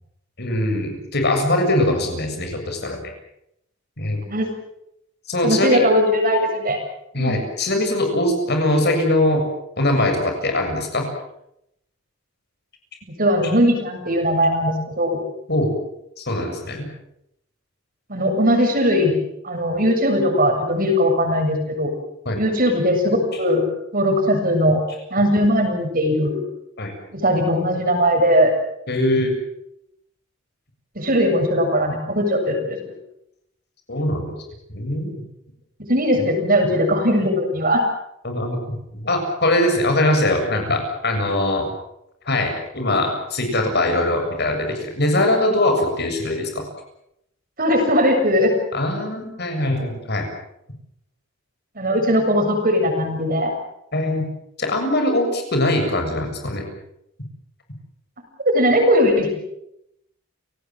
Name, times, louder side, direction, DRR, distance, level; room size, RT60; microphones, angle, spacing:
voice 1, 0.4-3.0 4.0-4.2 5.3-5.8 7.1-9.4 9.8-11.0 15.5-15.7 16.2-16.9 22.3-22.4 26.8-27.0 28.9-29.3 33.9-34.4 34.7-35.1 38.2-41.7 42.3-46.6 48.7-50.2 53.9-54.3 54.6-56.6, left 1 dB, 55° left, 4 dB, 7.4 m, -21 dB
voice 2, 5.4-6.8 7.1-7.4 13.2-15.2 18.1-19.2 19.4-21.9 22.4-23.6 23.9-24.8 25.1-26.4 27.1-28.5 31.0-32.9 35.8-37.9 47.6-48.5 51.8-53.6 58.4-59.3, equal, 45° right, 4 dB, 7.3 m, -19 dB
30.0 x 18.5 x 7.6 m, 0.80 s
head